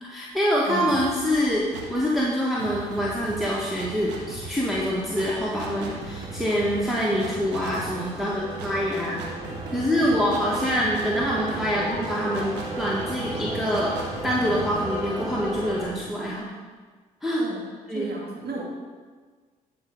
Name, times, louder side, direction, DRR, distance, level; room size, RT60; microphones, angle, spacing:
voice 1, 0.0-9.3 9.7-16.5 17.2-17.4 17.9-18.1, equal, ahead, -6 dB, 1.6 m, -25 dB
voice 2, 0.7-1.0 17.4-17.6 17.9-18.6, right 4 dB, 65° right, -1 dB, 2.0 m, -34 dB
sound 1, 0.9-2.1 2.6-16.3, right 4 dB, 85° right, 1.4 m, -40 dB
sound 2, 2.1-15.9, right 2 dB, 25° right, 3.1 m, -37 dB
11.5 x 4.5 x 5.4 m, 1.5 s
supercardioid pair, 60°, 18 cm